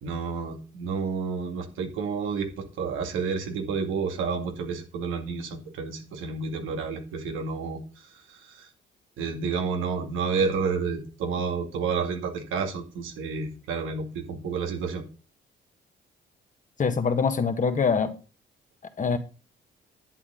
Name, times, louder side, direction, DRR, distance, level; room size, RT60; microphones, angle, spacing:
voice 1, 0.0-8.7 9.2-15.0, right 5 dB, 90° right, 2.3 m, -30 dB
voice 2, 16.8-18.2 19.0-19.2, left 5 dB, 40° left, 1.7 m, -24 dB
10.5 x 8.5 x 3.9 m
cardioid pair, 90°, 20 cm